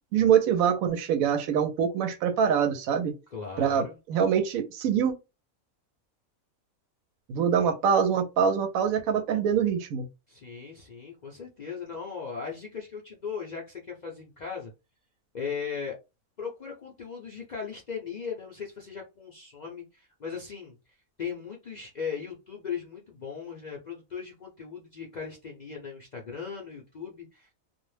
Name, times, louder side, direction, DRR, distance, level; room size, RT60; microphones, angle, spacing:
voice 1, 0.1-3.1 3.6-5.1 7.3-10.1, right 8 dB, 90° right, 1.0 m, -24 dB
voice 2, 3.3-4.0 10.3-14.7 15.3-16.0 16.4-20.8 21.2-27.5, left 6 dB, 50° left, 0.5 m, -38 dB
2.5 x 2.0 x 3.1 m
omnidirectional pair, 1.4 m